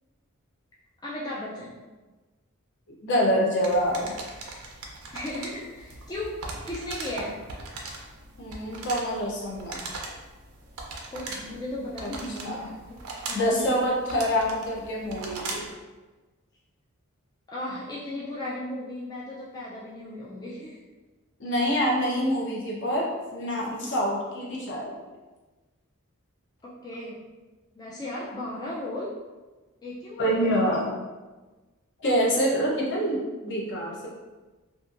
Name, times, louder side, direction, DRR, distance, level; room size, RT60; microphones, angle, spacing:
voice 1, 1.0-1.7 5.1-6.4 6.7-7.4 11.1-13.0 13.2-13.7 17.5-20.8 26.6-27.3 27.8-29.2 29.8-30.5, left 1 dB, 20° left, -6 dB, 0.3 m, -36 dB
voice 2, 3.0-4.2 8.4-9.8 12.0-12.1 12.4-12.7 13.3-15.6 21.4-24.9 30.2-30.9 32.0-34.1, equal, 55° left, -3 dB, 0.7 m, -26 dB
sound 1, 3.6-15.8, right 3 dB, 90° right, 0.5 m, -40 dB
2.7 x 2.6 x 2.4 m, 1.2 s
head